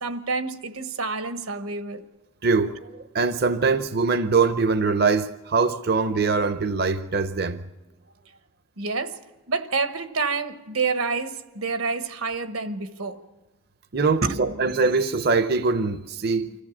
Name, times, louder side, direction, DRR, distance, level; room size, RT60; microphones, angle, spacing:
voice 1, 0.0-2.0 8.8-9.2 9.5-13.2 14.2-14.5, right 4 dB, 85° right, 1.2 m, -28 dB
voice 2, 2.4-7.6 13.9-16.5, right 4 dB, 50° right, 0.6 m, -23 dB
25.5 x 14.5 x 7.2 m
head